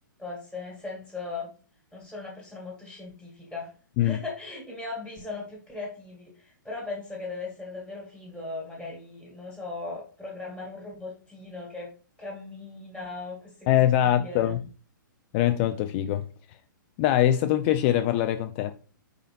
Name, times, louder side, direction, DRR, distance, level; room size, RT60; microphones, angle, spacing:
voice 1, 0.2-1.5 1.9-3.7 4.0-11.9 12.2-14.6, left 3 dB, 5° right, 1.5 m, -38 dB
voice 2, 13.7-14.6 15.3-16.2 17.0-18.7, left 12 dB, 30° left, 0.3 m, -23 dB
5.2 x 3.9 x 2.5 m
hypercardioid pair, 130°, 11 cm